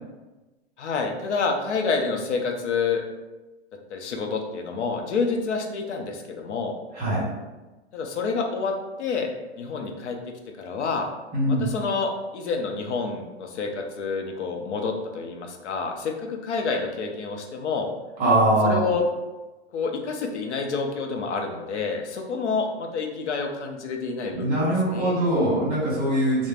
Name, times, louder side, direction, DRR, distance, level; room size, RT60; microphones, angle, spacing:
voice 1, 0.8-3.0 3.9-6.7 7.9-8.7 9.0-9.3 9.5-10.2 10.6-11.1 11.5-17.9 18.6-19.0 19.7-24.6 24.9-25.2, left 4 dB, 85° left, 3 dB, 0.6 m, -28 dB
voice 2, 6.9-7.3 11.3-11.7 18.2-18.8 24.3-26.5, right 1 dB, 20° right, -7 dB, 1.2 m, -22 dB
3.1 x 2.1 x 2.4 m, 1.1 s
hypercardioid pair, 125°, 34 cm